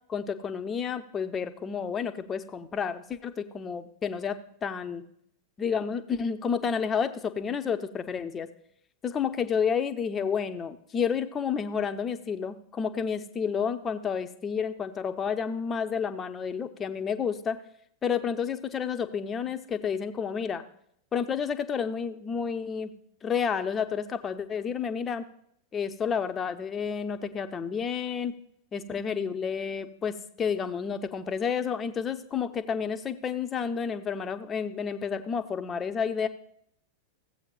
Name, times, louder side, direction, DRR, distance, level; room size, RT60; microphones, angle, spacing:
voice 1, 0.1-5.0 5.6-8.5 9.0-17.6 18.0-20.6 21.1-22.9 23.2-25.3 25.7-28.4 28.7-36.3, left 6 dB, 20° left, 9 dB, 0.8 m, -30 dB
15.5 x 8.2 x 2.4 m, 0.68 s
figure-of-eight pair, 90°, 0 cm